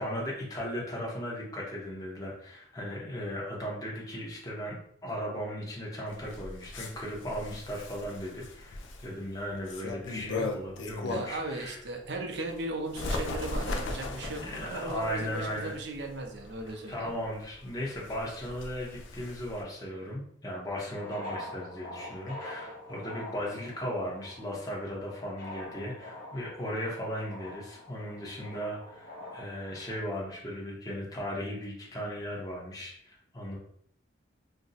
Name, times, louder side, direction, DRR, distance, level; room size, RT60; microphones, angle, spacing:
voice 1, 0.0-11.8 14.3-15.7 16.9-33.6, equal, 20° left, -3 dB, 0.7 m, -37 dB
Bird, 6.1-11.5 11.9-19.6, left 2 dB, 75° left, 0.4 m, -38 dB
voice 2, 11.1-17.1, right 2 dB, 60° right, 3 dB, 0.5 m, -37 dB
sound 1, 20.9-30.0, left 1 dB, 50° left, 1.0 m, -45 dB
2.5 x 2.0 x 3.9 m, 0.66 s
head